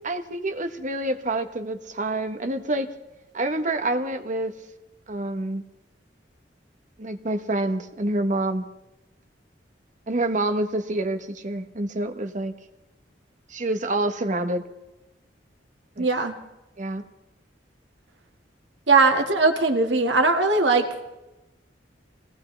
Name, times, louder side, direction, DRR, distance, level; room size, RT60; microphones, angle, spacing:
voice 1, 0.0-2.9 3.3-4.5 5.1-5.6 7.0-8.6 10.1-12.5 13.5-14.6 16.0-16.1 16.8-17.0, right 2 dB, 45° right, 8 dB, 1.2 m, -27 dB
voice 2, 16.0-16.3 18.9-20.9, right 3 dB, 75° right, 4 dB, 1.9 m, -19 dB
23.0 x 17.5 x 3.4 m, 0.98 s
head